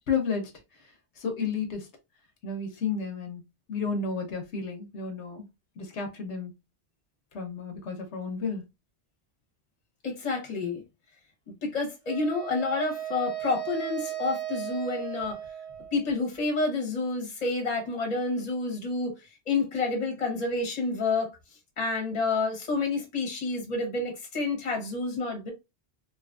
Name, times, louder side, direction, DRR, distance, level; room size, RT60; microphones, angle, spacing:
voice 1, 0.1-0.5 1.2-1.9 2.4-3.4 3.7-5.5 5.8-6.5 7.3-8.6, left 5 dB, 80° left, 1.0 m, -32 dB
voice 2, 10.0-10.8 11.6-15.4 15.9-19.1 19.5-21.3 21.8-25.5, left 3 dB, 40° left, 0.9 m, -29 dB
Wind instrument woodwind instrument, 12.1-16.2, right 12 dB, 40° right, 0.5 m, -36 dB
2.9 x 2.4 x 2.2 m
omnidirectional pair, 1.2 m